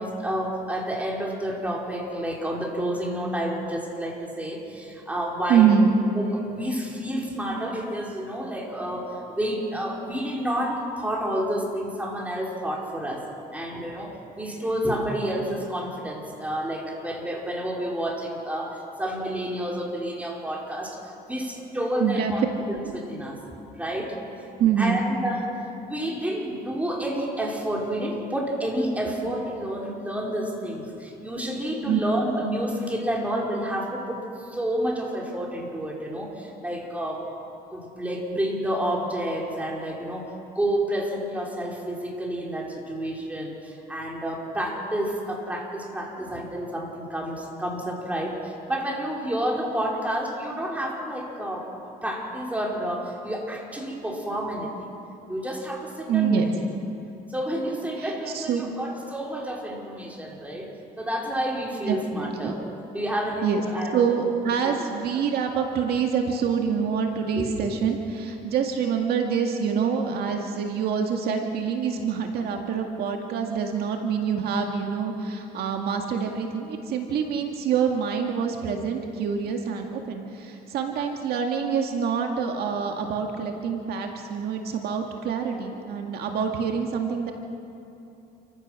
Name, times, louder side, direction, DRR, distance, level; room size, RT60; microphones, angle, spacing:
voice 1, 0.0-5.7 6.2-13.3 13.5-21.0 21.3-23.4 23.7-24.2 24.8-37.3 37.7-51.7 52.0-54.9 55.3-56.4 57.3-60.7 61.0-62.6 62.9-64.1 64.6-64.8 67.4-67.5, right 1 dB, 10° right, -2 dB, 4.6 m, -30 dB
voice 2, 5.5-5.9 22.0-22.3 24.6-25.0 31.9-32.0 56.1-56.5 58.0-58.8 61.9-62.5 63.4-63.6 63.9-87.3, right 7 dB, 70° right, 3 dB, 1.9 m, -26 dB
28.5 x 15.5 x 6.4 m, 2.8 s
cardioid pair, 110°, 17 cm